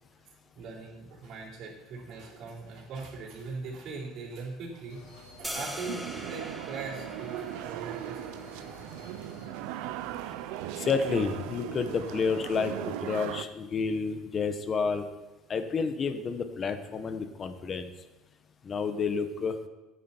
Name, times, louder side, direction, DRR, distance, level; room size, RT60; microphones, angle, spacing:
voice 1, 0.5-8.9, right 4 dB, 55° right, -5 dB, 4.3 m, -41 dB
sound 1, 4.9-12.9, left 4 dB, 85° left, 2.5 m, -52 dB
sound 2, 5.4-11.5, equal, 5° right, 1.0 m, -44 dB
sound 3, 5.8-13.4, right 13 dB, 75° right, 0.5 m, -38 dB
voice 2, 10.8-15.1 15.5-17.9 18.6-19.5, left 5 dB, 30° left, 9 dB, 1.1 m, -30 dB
13.5 x 9.6 x 4.5 m, 1.1 s
cardioid pair, 125°, 0 cm